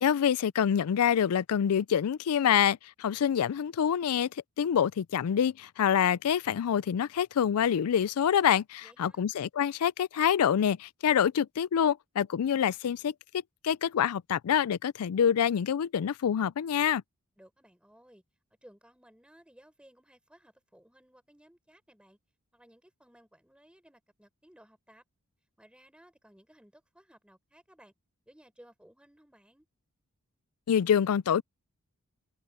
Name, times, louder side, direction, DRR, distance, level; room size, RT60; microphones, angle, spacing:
voice 1, 0.0-4.3 4.6-13.1 13.6-17.0 30.7-31.4, left 8 dB, 80° left, 0.4 m, -26 dB
voice 2, 8.8-9.3 17.4-18.2 18.6-22.2 22.5-25.0 25.6-27.9 28.3-29.7, equal, 5° right, 4.5 m, -59 dB
head